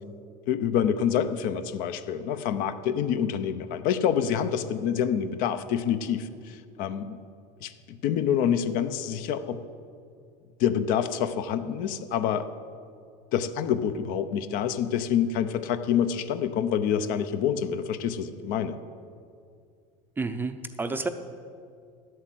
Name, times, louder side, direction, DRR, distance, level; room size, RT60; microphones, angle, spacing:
voice 1, 0.5-7.2 7.6-9.6 10.6-12.5 13.3-18.8, left 8 dB, 60° left, 11 dB, 0.7 m, -27 dB
voice 2, 20.2-21.1, right 3 dB, 10° right, 9 dB, 0.5 m, -30 dB
11.0 x 7.9 x 7.8 m, 2.3 s
supercardioid pair, 130°, 16 cm